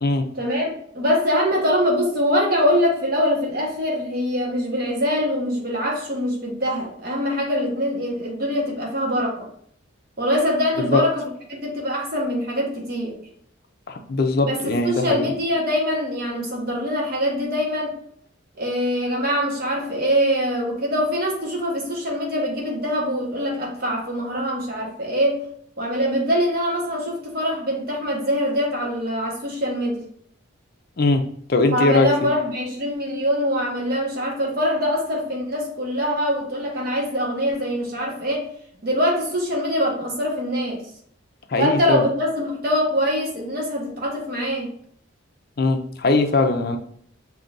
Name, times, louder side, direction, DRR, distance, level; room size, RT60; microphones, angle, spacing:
voice 1, 0.3-9.5 10.2-13.1 14.4-17.9 18.6-25.4 25.8-30.0 31.6-38.5 38.8-40.9 41.6-44.7, equal, 50° right, -1 dB, 1.2 m, -23 dB
voice 2, 13.9-15.3 31.0-31.2 31.5-32.3 41.5-42.1 45.6-46.8, left 2 dB, 50° left, 5 dB, 0.5 m, -20 dB
5.3 x 2.8 x 2.5 m, 0.64 s
head